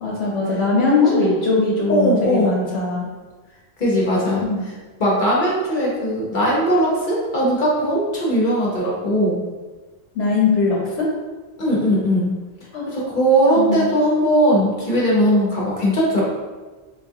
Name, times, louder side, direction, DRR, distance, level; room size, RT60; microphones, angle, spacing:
voice 1, 0.0-3.1 4.4-4.6 10.1-11.1 12.7-12.8 13.6-13.8, left 3 dB, 85° left, -4 dB, 1.0 m, -20 dB
voice 2, 1.9-2.5 3.8-4.4 5.0-9.4 11.6-12.3 12.9-16.3, equal, 55° left, -5 dB, 0.9 m, -19 dB
4.8 x 2.4 x 2.7 m, 1.3 s
omnidirectional pair, 1.0 m